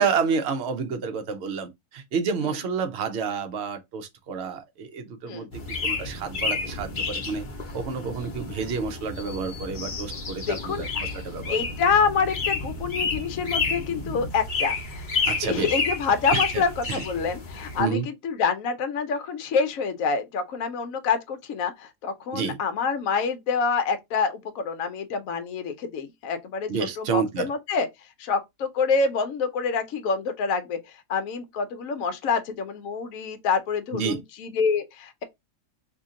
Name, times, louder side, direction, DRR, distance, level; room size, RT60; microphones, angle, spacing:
voice 1, 0.0-7.4 7.7-11.6 15.3-15.7 16.3-16.6 16.9-17.0 17.8-18.1 22.3-22.6 26.7-27.5 33.9-34.2, right 6 dB, 55° right, 0.8 m, -29 dB
sound 1, 5.5-17.8, left 4 dB, 40° left, 0.8 m, -30 dB
voice 2, 10.5-10.8 11.5-15.1 15.4-27.9 28.2-35.2, left 5 dB, 65° left, 1.1 m, -27 dB
2.8 x 2.7 x 3.6 m
omnidirectional pair, 1.7 m